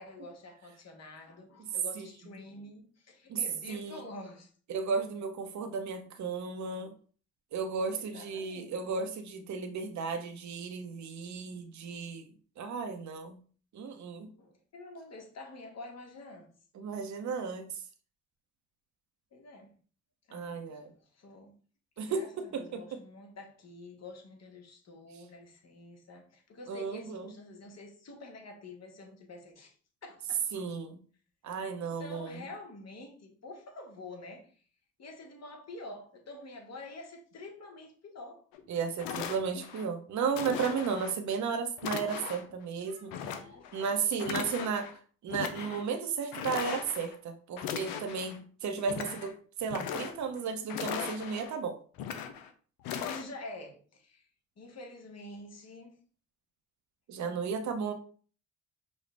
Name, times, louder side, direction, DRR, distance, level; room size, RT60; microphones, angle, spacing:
voice 1, 0.0-4.5 7.9-8.9 14.4-16.5 19.3-19.7 20.3-21.5 22.0-29.7 30.0-30.5 31.8-34.5 35.0-38.4 42.8-44.4 53.0-54.3 54.6-56.0, left 2 dB, 50° left, 1.4 m, -48 dB
voice 2, 3.7-4.0 4.7-6.9 7.5-12.3 12.6-13.4 13.7-14.3 16.7-17.7 20.3-20.9 22.0-23.0 26.7-27.3 30.5-31.0 31.4-32.4 38.7-43.2 43.7-44.9 45.2-51.8 57.1-57.9, right 5 dB, 55° right, 0.8 m, -34 dB
sound 1, 38.5-38.6 39.0-39.8 40.3-41.2 41.8-42.5 43.1-43.9 44.2-44.9 45.3-45.8 46.3-47.1 47.6-48.4 48.8-49.3 49.6-50.4 50.7-51.5 52.0-52.5 52.8-53.2, left 8 dB, 85° left, 0.6 m, -38 dB
5.3 x 2.4 x 3.3 m
supercardioid pair, 55°, 33 cm